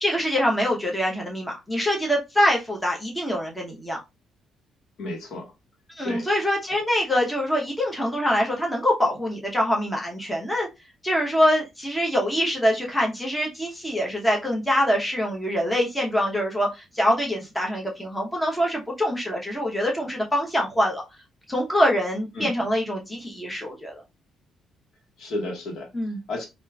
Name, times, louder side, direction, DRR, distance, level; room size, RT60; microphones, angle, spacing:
voice 1, 0.0-4.0 6.0-10.7 11.0-21.0 21.5-24.0 25.9-26.2, equal, 5° left, 0.8 m, -24 dB
voice 2, 5.0-5.5 6.0-6.3 22.3-22.5 25.2-25.9 26.3-26.5, left 2 dB, 65° left, 1.2 m, -32 dB
4.4 x 2.5 x 2.3 m
cardioid pair, 120°, 0 cm